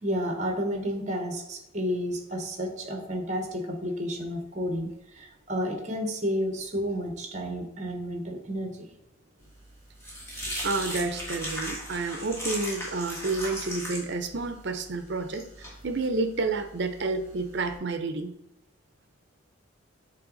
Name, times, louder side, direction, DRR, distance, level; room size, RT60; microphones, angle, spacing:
voice 1, 0.0-8.9, equal, 35° right, 4 dB, 1.0 m, -31 dB
sound 1, 9.5-17.8, equal, 15° left, 1.4 m, -38 dB
voice 2, 10.6-18.3, right 3 dB, 55° right, 8 dB, 0.6 m, -30 dB
7.6 x 3.9 x 3.9 m, 0.82 s
head